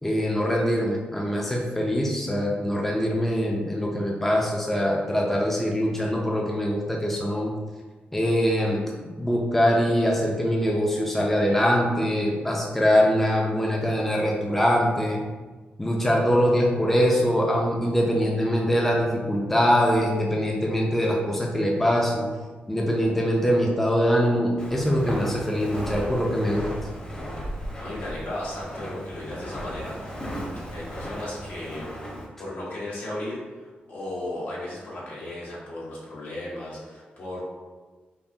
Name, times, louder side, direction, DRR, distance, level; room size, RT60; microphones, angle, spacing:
voice 1, 0.0-7.5 8.1-8.8 9.2-15.2 15.8-22.3 22.7-26.7, equal, 5° left, -1 dB, 0.5 m, -23 dB
Walk footsteps, 24.6-32.3, equal, 25° left, 0.9 m, -36 dB
voice 2, 27.8-31.9 32.4-37.4, left 1 dB, 75° left, -6 dB, 1.3 m, -35 dB
5.3 x 2.3 x 2.8 m, 1.4 s
wide cardioid pair, 120°, 4 cm